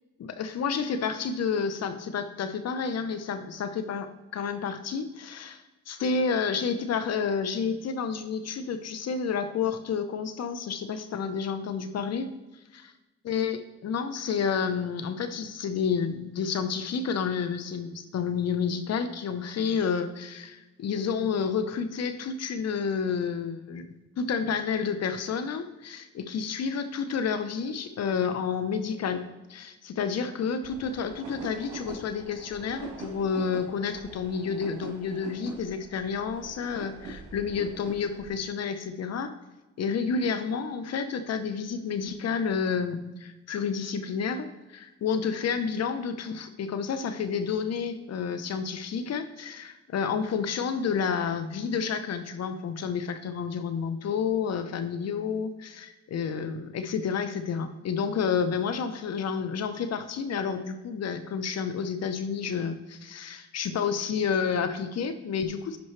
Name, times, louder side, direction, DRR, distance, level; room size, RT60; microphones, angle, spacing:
voice 1, 0.2-12.3 13.2-23.9 24.2-29.2 29.5-39.3 39.8-65.8, left 6 dB, 55° left, 10 dB, 0.9 m, -30 dB
sound 1, 30.6-38.3, right 2 dB, 75° right, 2.9 m, -44 dB
10.5 x 5.5 x 3.3 m, 1.1 s
cardioid pair, 90°, 30 cm